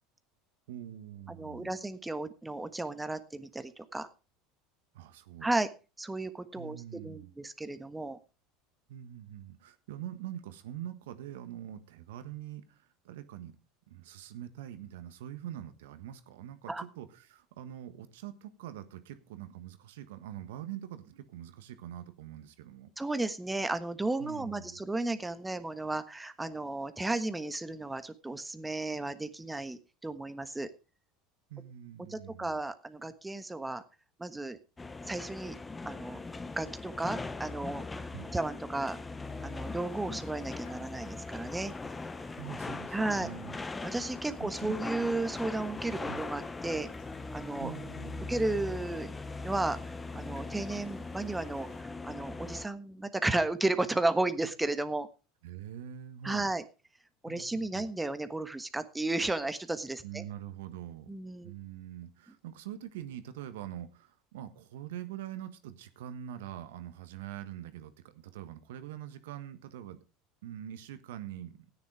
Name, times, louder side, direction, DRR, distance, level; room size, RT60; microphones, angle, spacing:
voice 1, 0.7-1.7 4.9-5.5 6.6-7.3 8.9-13.5 13.9-22.9 24.2-24.8 31.5-32.6 38.1-38.3 42.4-43.6 44.4-44.8 46.0-46.2 47.6-48.3 55.4-56.5 57.3-57.9 60.0-61.1 61.4-70.0 70.4-71.7, right 11 dB, 75° right, 1.4 m, -44 dB
voice 2, 1.3-4.1 5.4-5.7 6.0-8.2 16.7-16.8 23.0-30.7 32.1-33.8 34.2-34.6 35.1-35.6 35.8-36.2 36.6-39.0 39.4-41.7 42.9-43.3 43.8-46.9 47.3-47.7 48.3-49.1 49.4-55.1 56.2-56.6 57.2-60.2 61.1-61.5, right 2 dB, 10° right, 1.3 m, -34 dB
sound 1, 34.8-52.7, left 3 dB, 15° left, 0.9 m, -40 dB
Raindrop, 39.2-51.8, left 7 dB, 60° left, 3.6 m, -60 dB
13.5 x 9.7 x 4.9 m
hypercardioid pair, 80°, 0 cm